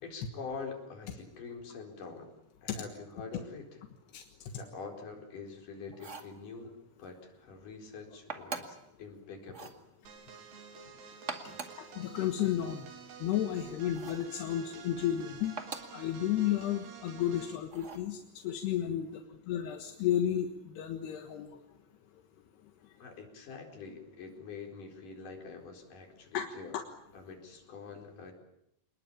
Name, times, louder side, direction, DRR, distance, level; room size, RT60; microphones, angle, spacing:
voice 1, 0.0-2.3 2.6-3.8 4.5-9.7 10.6-10.7 11.4-11.6 23.0-26.8 27.1-28.3, left 4 dB, 50° left, 2 dB, 5.9 m, -45 dB
sound 1, 5.9-6.4 8.3-8.9 9.5-9.8 11.1-11.9 13.9-14.3 15.6-16.0 17.7-18.1, right 4 dB, 30° right, 1.3 m, -42 dB
sound 2, 10.1-17.7, right 7 dB, 85° right, 5.6 m, -50 dB
voice 2, 12.0-12.9 13.2-15.6 15.9-18.2 18.4-19.2 19.5-20.5 20.8-21.5 26.3-26.5 26.7-26.8, left 11 dB, 80° left, 5 dB, 3.5 m, -32 dB
27.5 x 20.5 x 8.8 m, 0.78 s
omnidirectional pair, 4.7 m